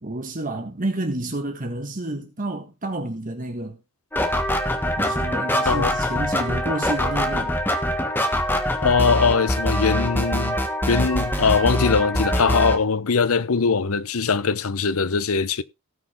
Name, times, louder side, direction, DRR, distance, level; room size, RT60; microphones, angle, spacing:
voice 1, 0.0-3.8 5.0-7.6, right 1 dB, 40° right, 1.5 m, -29 dB
sound 1, 4.1-12.8, equal, 10° left, 1.5 m, -23 dB
voice 2, 8.8-10.6 10.9-15.6, left 5 dB, 70° left, 0.7 m, -21 dB
17.5 x 6.1 x 3.5 m
head